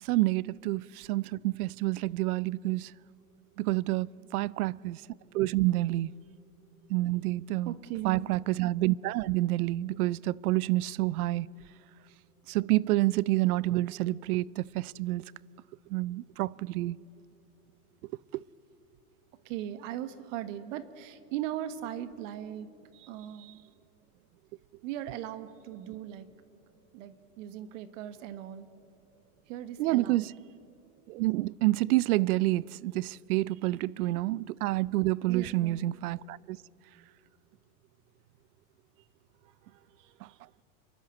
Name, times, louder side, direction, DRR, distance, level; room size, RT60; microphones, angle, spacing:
voice 1, 0.0-2.9 3.6-5.0 5.3-6.1 6.9-7.7 8.0-11.5 12.5-15.3 15.9-17.0 18.3-18.4 29.8-30.3 31.1-36.6 40.2-40.3, right 18 dB, 75° right, 0.6 m, -28 dB
voice 2, 7.6-8.4 19.4-23.7 24.8-26.3 26.9-28.7 29.5-30.3 33.9-34.1 35.3-35.8 39.4-40.4, right 11 dB, 55° right, 1.2 m, -39 dB
29.5 x 11.0 x 8.1 m
supercardioid pair, 140°, 44 cm